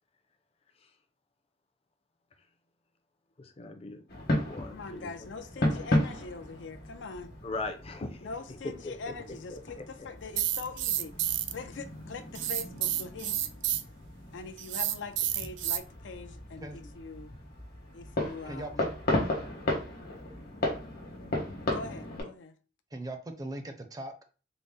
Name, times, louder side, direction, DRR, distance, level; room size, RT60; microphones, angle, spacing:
voice 1, 3.4-5.1 7.4-8.3 8.6-9.1 9.5-10.1, left 2 dB, 35° left, 0.5 m, -40 dB
sound 1, 4.1-22.2, left 1 dB, 60° left, 1.1 m, -35 dB
voice 2, 4.7-7.3 8.2-13.4 14.3-17.3 17.9-18.8 21.6-22.6, left 4 dB, 85° left, 0.5 m, -43 dB
sound 2, 10.4-11.5 12.3-13.8 14.6-15.8, right 12 dB, 90° right, 0.4 m, -30 dB
voice 3, 18.4-18.9 22.9-24.2, right 1 dB, 20° right, 0.5 m, -39 dB
3.9 x 2.0 x 3.6 m
head